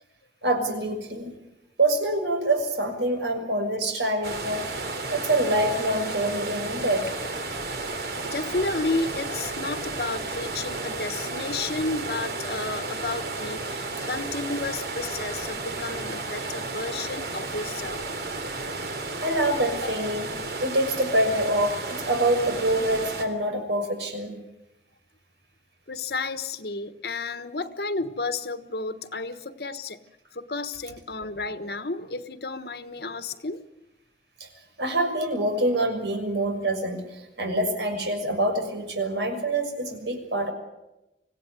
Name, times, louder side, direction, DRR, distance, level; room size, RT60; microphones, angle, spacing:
voice 1, 0.4-1.4 1.8-4.7 5.1-7.1 19.2-20.3 20.6-24.4 34.4-34.5 34.8-40.5, right 1 dB, 90° right, 4 dB, 6.4 m, -25 dB
sound 1, 4.2-23.2, right 3 dB, 65° right, 3.3 m, -33 dB
voice 2, 8.2-18.0 25.9-30.0 30.3-33.6, left 3 dB, 65° left, 10 dB, 1.3 m, -32 dB
26.0 x 17.0 x 9.5 m, 0.94 s
head